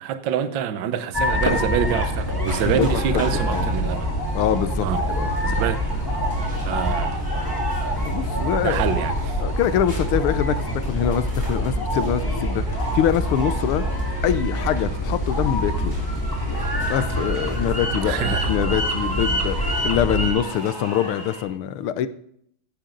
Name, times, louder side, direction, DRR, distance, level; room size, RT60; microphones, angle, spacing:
voice 1, 0.0-4.1 4.8-5.0 5.4-5.8 6.6-7.2 8.6-9.4 18.1-18.6, right 8 dB, 65° right, 1.5 m, -26 dB
sound 1, 1.1-20.3, equal, 10° left, 1.7 m, -25 dB
sound 2, 2.4-21.4, right 1 dB, 35° right, 5.1 m, -38 dB
voice 2, 2.6-3.7 4.3-4.9 5.1-5.4 8.0-8.8 9.4-13.8 14.2-16.0 16.9-22.1, left 10 dB, 80° left, 1.7 m, -24 dB
16.0 x 10.0 x 3.9 m
omnidirectional pair, 2.4 m